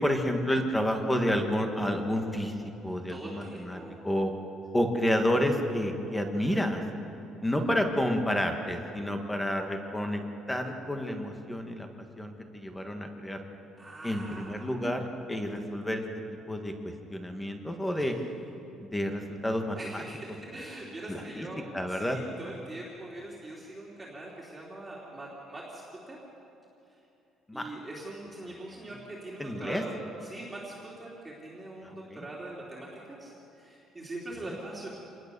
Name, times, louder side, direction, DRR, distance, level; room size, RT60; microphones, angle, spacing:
voice 1, 0.0-2.5 2.8-4.3 4.7-6.8 7.4-10.2 10.5-11.9 12.2-13.4 14.0-16.0 16.5-16.7 17.1-18.1 18.9-20.0 21.1-21.5 21.7-22.2 27.5-27.7 29.4-29.8 31.8-32.3, equal, 5° left, 4 dB, 1.6 m, -30 dB
voice 2, 3.1-4.0 6.4-6.6 7.4-7.6 13.8-14.9 18.1-18.5 19.8-26.2 27.5-29.9 30.2-34.9, right 2 dB, 10° right, -6 dB, 3.1 m, -43 dB
26.5 x 20.0 x 6.9 m, 2.8 s
cardioid pair, 175°, 0 cm